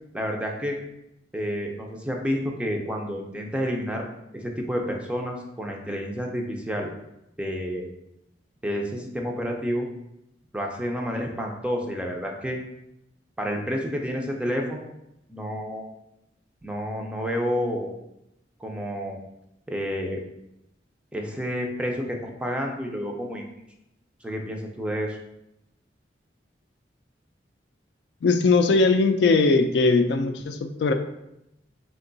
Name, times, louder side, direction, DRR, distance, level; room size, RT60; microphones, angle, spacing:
voice 1, 0.1-0.8 1.3-4.0 4.3-6.9 7.4-7.9 8.6-9.9 10.5-12.6 13.4-14.9 15.3-15.9 16.6-17.9 18.6-19.2 19.7-20.2 21.1-23.4 24.2-25.2, equal, 5° right, 1 dB, 0.4 m, -29 dB
voice 2, 28.2-30.9, left 3 dB, 65° left, 7 dB, 0.3 m, -20 dB
4.5 x 2.3 x 3.8 m, 0.85 s
head